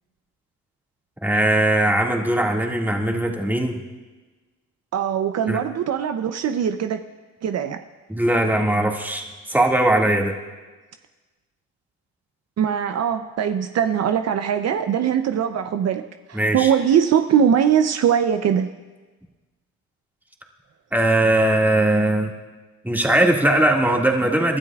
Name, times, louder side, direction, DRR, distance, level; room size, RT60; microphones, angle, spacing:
voice 1, 1.2-3.8 5.5-5.6 8.1-10.3 16.3-16.7 20.9-22.3 22.8-24.6, right 1 dB, 5° right, 0 dB, 2.0 m, -20 dB
voice 2, 4.9-7.0 7.4-7.8 12.6-16.0 16.3-18.7, right 8 dB, 60° right, 8 dB, 0.7 m, -21 dB
28.5 x 12.5 x 2.4 m, 1.3 s
cardioid pair, 90°, 30 cm